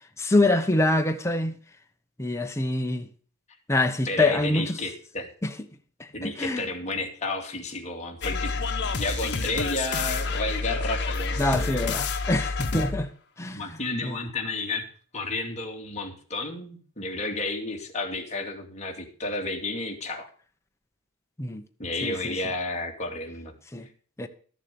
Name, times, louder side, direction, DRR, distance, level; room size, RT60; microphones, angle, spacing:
voice 1, 0.2-1.6 2.2-3.1 3.7-4.8 5.4-5.5 6.0-6.7 11.4-13.1 13.4-14.2 21.4-21.6 22.0-22.3 23.7-23.9 24.2-24.3, left 2 dB, 15° left, 0.9 m, -25 dB
voice 2, 4.0-5.3 6.1-8.5 9.0-11.9 13.5-14.8 15.1-20.3 21.8-23.5, left 2 dB, 30° left, 2.5 m, -32 dB
sound 1, 8.2-13.1, left 4 dB, 55° left, 1.4 m, -29 dB
13.5 x 7.4 x 6.9 m
head